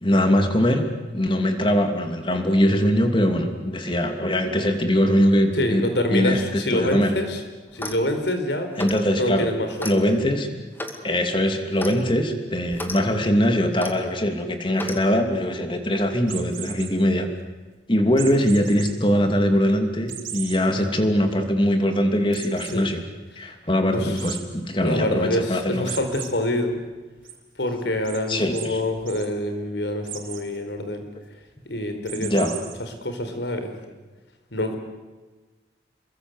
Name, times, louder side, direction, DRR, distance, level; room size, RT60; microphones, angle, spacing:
voice 1, 0.0-0.8 1.1-5.8 6.1-7.1 8.8-9.5 9.8-10.6 11.0-17.3 17.9-23.0 23.4-26.0 27.8-27.9 28.3-28.8 32.1-32.6 33.3-33.4, equal, 30° left, 5 dB, 2.8 m, -22 dB
voice 2, 5.5-7.4 7.7-8.7 9.2-10.0 22.7-22.9 23.4-23.5 23.9-24.2 24.8-26.8 27.6-31.0 31.6-32.5 32.8-33.7 34.5-34.8, left 1 dB, 80° left, 7 dB, 4.4 m, -26 dB
Clock, 7.7-8.1 8.8-9.1 9.8-10.0 10.8-11.0 11.8-12.0 12.7-13.0 13.8-14.0 14.8-15.0, left 1 dB, 10° left, 2.1 m, -33 dB
sound 1, 16.3-16.9 18.2-18.9 19.3-19.4 20.1-20.6 21.1-21.2 21.4-21.5 22.3-22.8 24.2-24.4 25.8-26.3 26.7-27.3 28.0-28.2 28.5-28.7 29.0-29.3 30.0-30.4 32.0-32.7, right 10 dB, 50° right, 4.6 m, -36 dB
27.5 x 23.0 x 8.1 m, 1.2 s
head